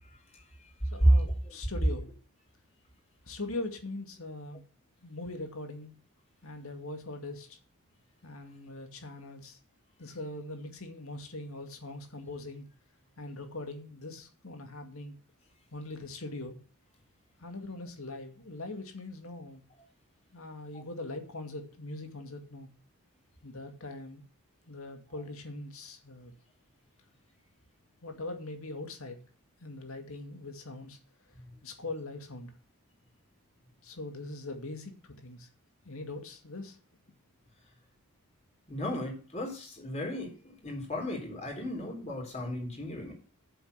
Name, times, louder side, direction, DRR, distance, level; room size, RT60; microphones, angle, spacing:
voice 1, 0.9-2.1 3.3-4.6 5.0-5.9 6.4-7.6 8.2-9.6 10.0-12.6 13.2-15.2 15.7-16.6 17.4-19.6 20.3-22.7 23.4-24.2 24.7-26.3 28.0-29.2 29.6-31.0 31.6-32.5 33.8-35.5 35.8-36.8, left 2 dB, 70° left, 5 dB, 2.2 m, -41 dB
voice 2, 38.7-43.1, equal, 30° left, 1 dB, 4.0 m, -32 dB
7.9 x 7.6 x 6.5 m, 0.40 s
head